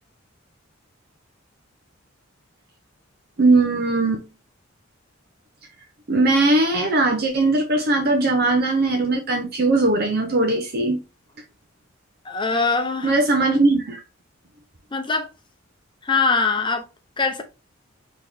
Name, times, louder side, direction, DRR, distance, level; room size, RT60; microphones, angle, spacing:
voice 1, 3.4-4.2 6.1-11.0 13.0-14.0, right 2 dB, 50° right, 0.8 m, -19 dB
voice 2, 12.2-13.2 14.9-15.3 16.0-16.9 17.2-17.4, left 4 dB, 25° left, 0.7 m, -22 dB
4.2 x 3.0 x 3.5 m
head